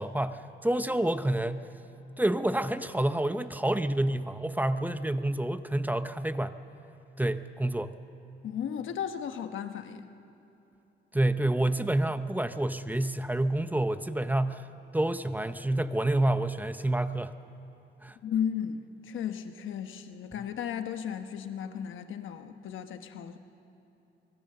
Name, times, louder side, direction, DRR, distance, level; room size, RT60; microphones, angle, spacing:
voice 1, 0.0-1.7 2.2-6.6 7.2-7.9 11.1-14.7 14.9-17.3 18.0-18.2, right 1 dB, 10° right, 11 dB, 0.6 m, -28 dB
voice 2, 8.4-10.1 18.2-23.4, left 8 dB, 85° left, 8 dB, 1.1 m, -35 dB
25.5 x 21.0 x 6.8 m, 2.8 s
cardioid pair, 125°, 20 cm